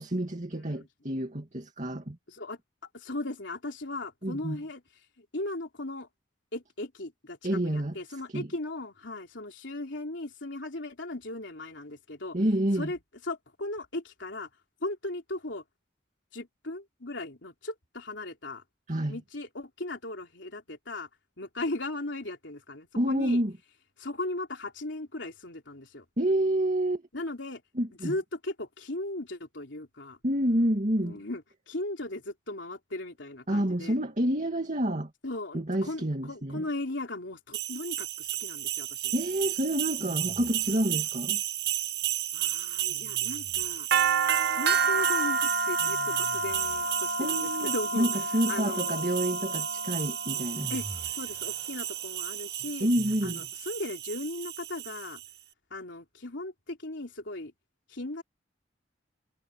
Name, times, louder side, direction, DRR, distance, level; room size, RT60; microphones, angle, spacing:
voice 1, 0.0-2.2 4.2-4.6 7.4-7.9 8.3-8.5 12.3-12.9 18.9-19.2 23.0-23.5 26.2-27.0 27.8-28.1 30.2-31.2 33.5-35.1 35.5-36.6 39.1-41.4 47.2-50.7 52.8-53.5, right 1 dB, 40° right, 2.4 m, -28 dB
voice 2, 0.5-0.9 2.3-2.6 2.9-4.8 5.2-6.1 6.5-12.4 12.7-13.0 13.2-14.5 14.8-15.6 16.3-18.6 19.1-21.1 21.4-23.4 24.0-26.0 27.1-27.6 28.0-30.2 31.0-34.0 35.2-39.1 42.3-43.9 44.5-48.2 48.5-49.1 50.7-50.9 51.1-52.9 53.2-55.2 55.7-57.5 57.9-58.2, left 2 dB, 70° left, 3.9 m, -37 dB
sound 1, 37.5-55.3, right 7 dB, 55° right, 1.8 m, -30 dB
sound 2, 40.0-41.1 42.9-44.0 45.8-47.7 49.6-49.7 50.5-53.8, equal, ahead, 6.0 m, -47 dB
head